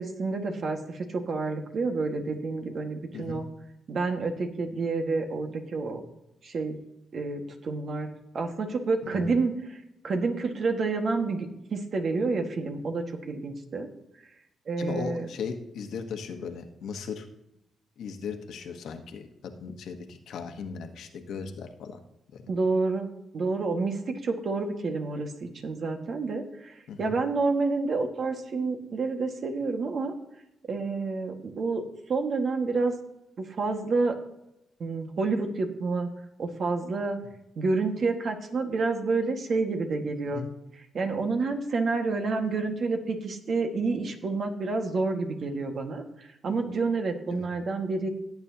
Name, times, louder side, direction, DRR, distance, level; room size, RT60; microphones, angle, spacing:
voice 1, 0.0-3.5 3.9-6.0 6.4-6.8 7.1-13.9 14.7-15.3 22.5-23.1 23.3-30.1 30.7-31.8 32.1-32.9 33.4-34.1 34.8-36.1 36.4-37.2 37.6-40.5 40.9-48.1, right 3 dB, 60° right, 4 dB, 1.6 m, -29 dB
voice 2, 14.8-17.3 18.0-22.0 22.3-22.4 26.9-27.1 40.3-40.5 47.3-47.5, left 6 dB, 80° left, 5 dB, 1.2 m, -37 dB
16.5 x 8.4 x 2.8 m, 0.86 s
cardioid pair, 75°, 0 cm